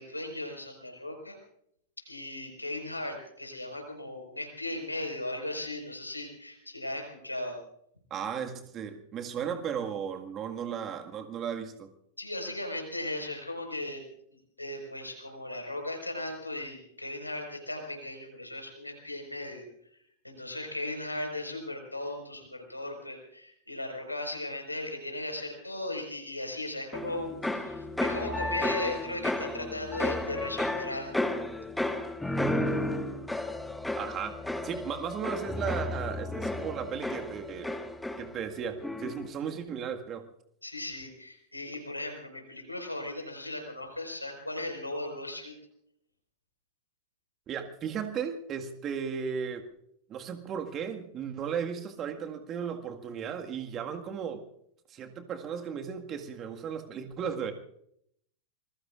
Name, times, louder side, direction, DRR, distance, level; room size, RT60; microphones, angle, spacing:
voice 1, 0.0-1.4 2.0-7.6 12.2-14.0 14.6-19.7 20.2-31.2 40.6-45.5, left 1 dB, 85° left, 3 dB, 4.9 m, -37 dB
voice 2, 8.1-11.9 34.0-34.4 34.6-37.8 38.2-40.3 47.5-49.6 50.1-54.4 54.9-57.5, right 7 dB, 30° right, 5 dB, 1.8 m, -35 dB
sound 1, 26.9-38.5 38.8-39.3, left 1 dB, 5° left, 1.6 m, -33 dB
27.0 x 22.0 x 2.5 m, 0.71 s
figure-of-eight pair, 90°, 0 cm